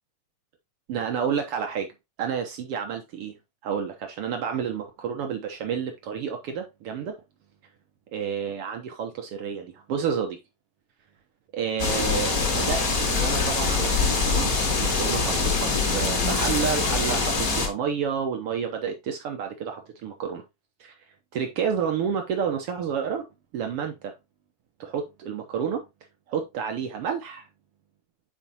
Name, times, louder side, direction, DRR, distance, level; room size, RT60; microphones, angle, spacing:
voice 1, 0.9-1.9 2.2-3.3 3.6-7.2 8.1-10.4 11.5-14.5 14.8-20.4 20.8-20.9 21.3-23.2 23.5-24.1 24.8-25.8 26.3-27.5, right 7 dB, 75° right, 1.3 m, -30 dB
sound 1, 11.8-17.7, left 4 dB, 40° left, 1.3 m, -24 dB
9.6 x 4.4 x 2.8 m
omnidirectional pair, 3.8 m